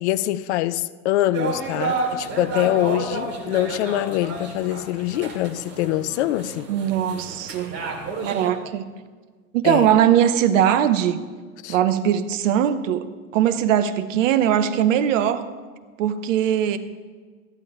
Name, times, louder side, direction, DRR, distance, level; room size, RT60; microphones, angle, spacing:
voice 1, 0.0-6.7 9.6-9.9 11.6-11.8, left 14 dB, 55° left, 0.5 m, -24 dB
sound 1, 1.3-8.5, right 3 dB, 35° right, 2.4 m, -31 dB
voice 2, 6.7-7.7 8.2-8.9 9.5-11.2 11.7-13.0 13.3-15.4 16.0-16.8, right 10 dB, 60° right, 0.9 m, -20 dB
14.5 x 11.5 x 3.6 m
figure-of-eight pair, 80°, 43 cm